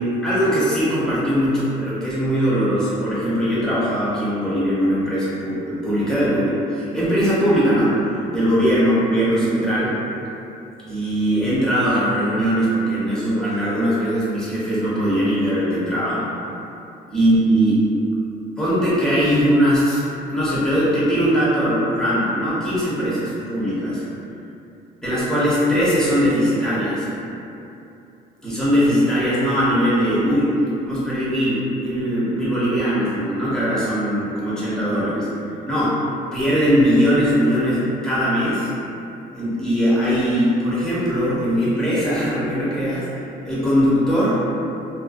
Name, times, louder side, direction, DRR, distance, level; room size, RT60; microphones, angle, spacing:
voice 1, 0.0-9.9 10.9-16.2 17.1-17.8 18.6-20.0 20.3-24.0 25.0-27.1 28.4-35.3 35.7-36.0 36.3-38.7 39.3-43.1 43.4-44.4, equal, 5° left, -10 dB, 0.8 m, -20 dB
2.5 x 2.1 x 2.3 m, 2.7 s
cardioid pair, 110°, 17 cm